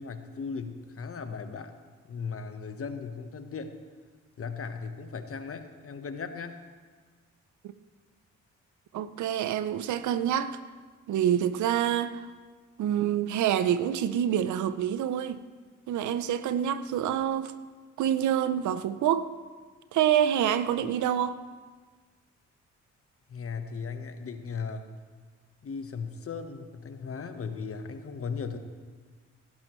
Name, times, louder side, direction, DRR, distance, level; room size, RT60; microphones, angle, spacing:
voice 1, 0.0-1.7 2.1-3.7 4.4-6.6 23.3-24.9 25.6-28.6, left 5 dB, 50° left, 1.2 m, -37 dB
voice 2, 8.9-10.6 11.1-12.3 12.8-15.4 15.9-17.5 18.0-19.3 19.9-21.4, right 10 dB, 75° right, 0.6 m, -27 dB
18.0 x 11.5 x 3.1 m
supercardioid pair, 60°, 30 cm